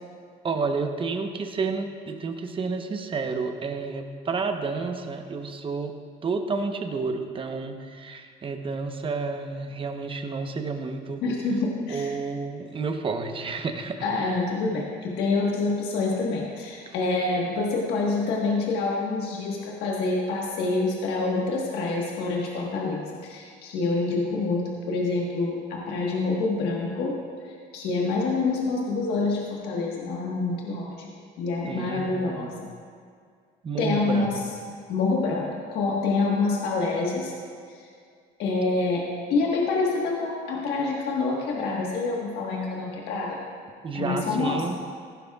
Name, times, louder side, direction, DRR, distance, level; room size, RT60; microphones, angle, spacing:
voice 1, 0.4-5.9 6.2-11.2 11.9-14.1 31.7-32.5 33.6-34.3 43.8-44.8, right 4 dB, 30° right, 6 dB, 0.9 m, -30 dB
voice 2, 11.2-12.1 14.0-27.1 27.4-32.7 33.8-34.4 34.9-37.3 37.7-37.8 38.4-43.5 43.9-44.7, left 3 dB, 85° left, -2 dB, 1.5 m, -27 dB
15.0 x 11.5 x 2.4 m, 2.1 s
cardioid pair, 110°, 17 cm